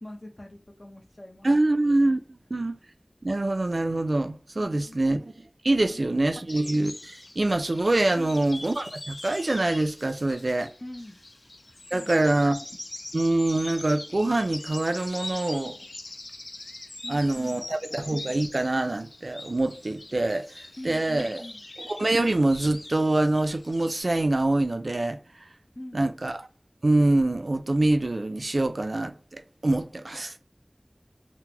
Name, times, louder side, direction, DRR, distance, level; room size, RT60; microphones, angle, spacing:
voice 1, 0.0-1.5 5.8-6.2 10.8-11.2 11.9-12.2 17.0-17.7 20.8-21.6 25.8-26.0, left 1 dB, 50° left, 0.7 m, -43 dB
voice 2, 1.4-2.8 3.2-10.7 11.9-12.6 13.1-15.8 17.1-20.5 20.8-21.4 21.8-25.2 25.9-26.4 26.8-30.3, right 2 dB, 85° right, 0.3 m, -25 dB
sound 1, 6.5-24.0, left 2 dB, 80° left, 0.4 m, -43 dB
3.7 x 2.1 x 2.8 m
wide cardioid pair, 40°, 0 cm